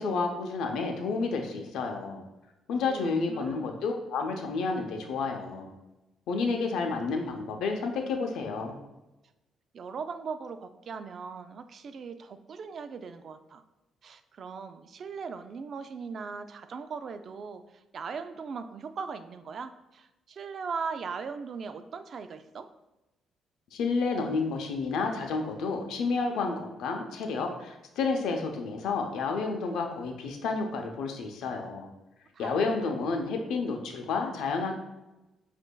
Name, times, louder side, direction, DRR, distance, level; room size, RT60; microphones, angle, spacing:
voice 1, 0.0-2.2 2.7-5.7 6.3-8.8 23.7-31.9 32.4-34.7, left 4 dB, 80° left, 3 dB, 0.6 m, -30 dB
voice 2, 2.8-3.7 9.7-13.6 14.0-22.7 32.3-32.7, right 5 dB, 55° right, 10 dB, 0.3 m, -39 dB
7.8 x 2.6 x 2.2 m, 1.0 s
cardioid pair, 90°, 0 cm